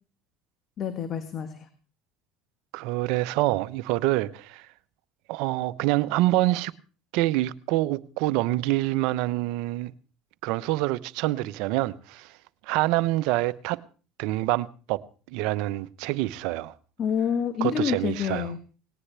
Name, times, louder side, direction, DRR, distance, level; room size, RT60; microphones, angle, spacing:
voice 1, 0.8-1.7 17.0-18.6, left 7 dB, 45° left, 1.6 m, -28 dB
voice 2, 2.7-4.7 5.3-6.7 7.1-9.9 10.4-12.3 12.7-13.8 14.2-15.0 15.3-16.7 17.6-18.5, right 17 dB, 70° right, 0.8 m, -26 dB
19.0 x 18.0 x 3.4 m
hypercardioid pair, 80°, 0 cm